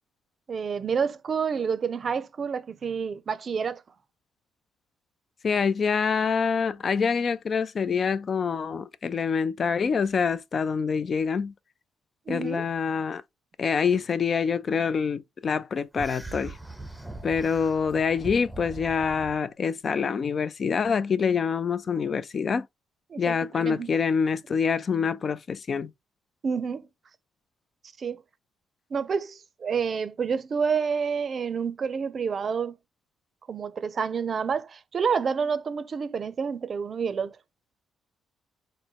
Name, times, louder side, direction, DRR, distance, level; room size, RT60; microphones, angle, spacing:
voice 1, 0.5-3.8 12.3-12.7 23.1-23.9 26.4-26.9 28.0-28.2 28.9-32.7 33.5-37.4, right 6 dB, 45° right, 0.5 m, -29 dB
voice 2, 5.4-11.5 12.3-13.2 13.6-16.6 17.2-22.7 23.2-25.9, left 6 dB, 45° left, 0.4 m, -26 dB
sound 1, 16.0-19.4, right 2 dB, 5° right, 0.7 m, -40 dB
4.1 x 2.1 x 4.5 m
cardioid pair, 90°, 0 cm